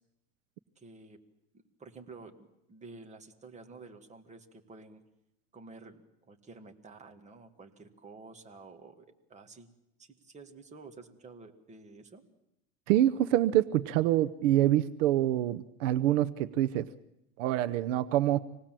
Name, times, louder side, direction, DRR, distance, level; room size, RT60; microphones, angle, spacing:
voice 1, 0.8-1.2 1.5-5.0 5.5-9.7 10.0-12.2, right 3 dB, 20° right, 5 dB, 1.9 m, -51 dB
voice 2, 12.9-16.9 17.4-18.4, right 13 dB, 70° right, 14 dB, 0.9 m, -26 dB
26.0 x 19.0 x 7.6 m, 0.86 s
supercardioid pair, 140°, 38 cm